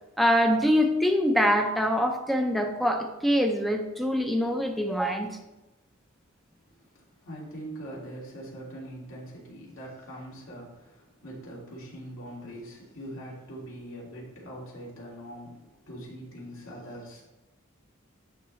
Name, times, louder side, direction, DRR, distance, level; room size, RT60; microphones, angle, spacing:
voice 1, 0.2-5.4, equal, ahead, 4 dB, 0.5 m, -24 dB
voice 2, 6.7-17.2, right 1 dB, 70° left, -4 dB, 2.5 m, -42 dB
11.0 x 4.2 x 3.1 m, 1.0 s
head